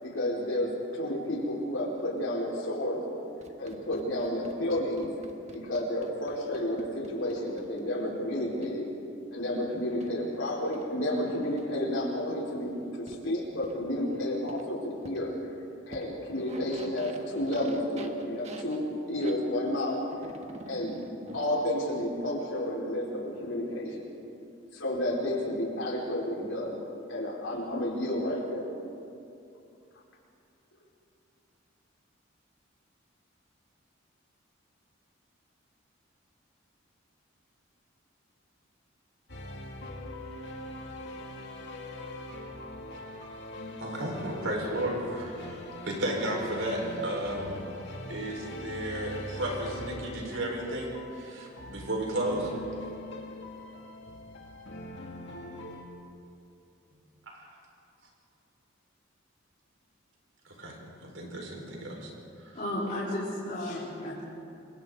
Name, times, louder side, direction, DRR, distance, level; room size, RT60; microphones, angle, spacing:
voice 1, 0.0-3.0 3.6-5.1 5.5-8.9 9.3-15.3 15.9-20.0 20.6-24.1 24.7-26.8 27.1-28.6, left 1 dB, 75° left, -3 dB, 4.7 m, -31 dB
sound 1, 3.4-7.8 8.6-8.7 10.0-10.1 10.7-10.8 11.6-11.7 13.1-13.2 13.6-13.7 14.5-14.6 15.0-15.2 15.9-16.1 16.3-19.4 20.1-22.2, right 1 dB, 35° right, 1.4 m, -46 dB
sound 2, 39.3-55.8, left 1 dB, 60° left, 2.4 m, -42 dB
voice 2, 43.8-47.7 48.1-52.5 57.3-57.5 60.4-62.1 62.4-62.6, right 1 dB, 75° right, 0 dB, 4.8 m, -34 dB
voice 3, 62.5-64.2, left 1 dB, 45° left, -10 dB, 4.2 m, -33 dB
29.0 x 23.0 x 4.0 m, 2.6 s
head